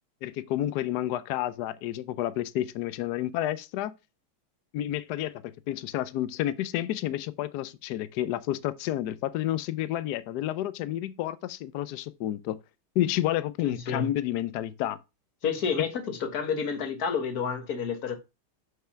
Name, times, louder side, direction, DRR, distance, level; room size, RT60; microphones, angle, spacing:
voice 1, 0.2-3.9 4.7-12.6 13.0-15.0, left 13 dB, 85° left, 0.9 m, -30 dB
voice 2, 13.6-14.1 15.4-18.1, left 6 dB, 50° left, 1.6 m, -30 dB
5.8 x 5.6 x 5.6 m
omnidirectional pair, 2.3 m